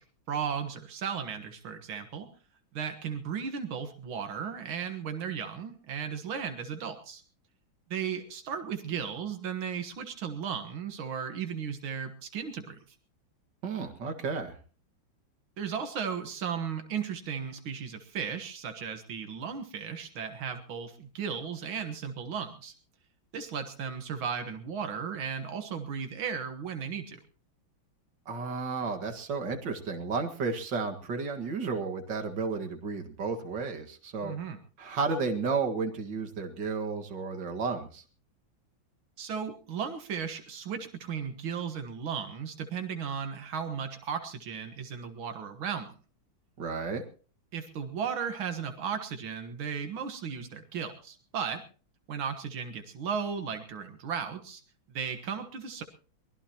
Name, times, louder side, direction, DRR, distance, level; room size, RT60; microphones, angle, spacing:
voice 1, 0.0-2.3 2.7-7.2 7.9-12.8 15.6-22.7 23.3-27.2 34.2-34.6 39.2-45.9 47.5-51.6 52.1-54.6 54.9-55.8, right 7 dB, 90° right, 6 dB, 2.3 m, -35 dB
voice 2, 13.6-14.6 28.3-34.3 34.8-38.0 46.6-47.0, right 4 dB, 65° right, 4 dB, 2.5 m, -32 dB
23.5 x 19.5 x 3.0 m, 0.39 s
omnidirectional pair, 2.2 m